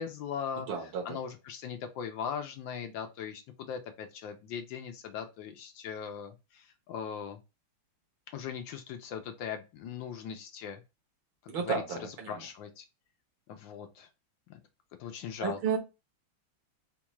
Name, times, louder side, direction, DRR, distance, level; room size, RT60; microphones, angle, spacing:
voice 1, 0.0-0.7 1.0-7.4 8.3-10.8 11.4-12.8 13.5-14.1 14.5-14.6 15.0-15.8, left 7 dB, 75° left, 1.2 m, -39 dB
voice 2, 0.7-1.2 11.5-12.4 15.4-15.8, right 6 dB, 75° right, 1.8 m, -32 dB
4.4 x 2.4 x 2.9 m
omnidirectional pair, 2.3 m